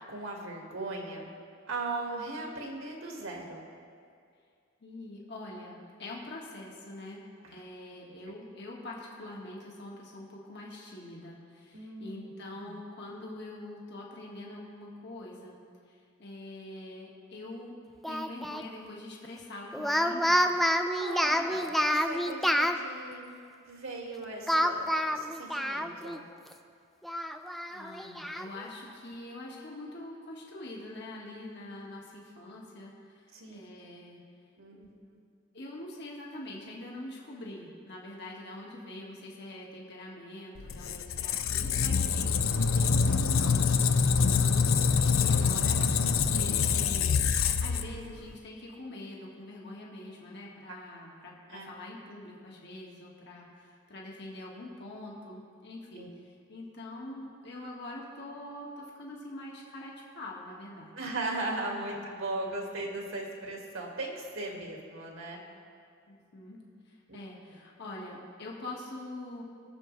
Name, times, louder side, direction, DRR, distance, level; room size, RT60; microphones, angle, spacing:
voice 1, 0.1-1.3 1.7-3.7 7.4-7.6 8.2-8.3 11.7-12.8 20.7-23.3 23.7-26.3 33.3-33.6 34.6-34.9 35.1-35.2 51.5-51.7 56.0-56.1 60.9-65.4 67.1-67.2, right 2 dB, 80° right, 0 dB, 1.9 m, -38 dB
voice 2, 4.8-7.2 7.5-15.6 15.9-17.8 18.1-20.5 21.5-21.7 27.7-34.2 34.7-34.9 35.5-47.2 47.6-60.9 64.5-64.6 66.1-69.4, left 1 dB, 60° left, -3 dB, 1.7 m, -44 dB
Speech, 18.0-18.6 19.7-22.8 24.5-26.2 26.5-26.6 27.0-28.5, equal, ahead, 0.4 m, -28 dB
Squeak, 40.6-48.3, left 5 dB, 85° left, 0.6 m, -26 dB
21.0 x 7.0 x 3.3 m, 2.3 s
head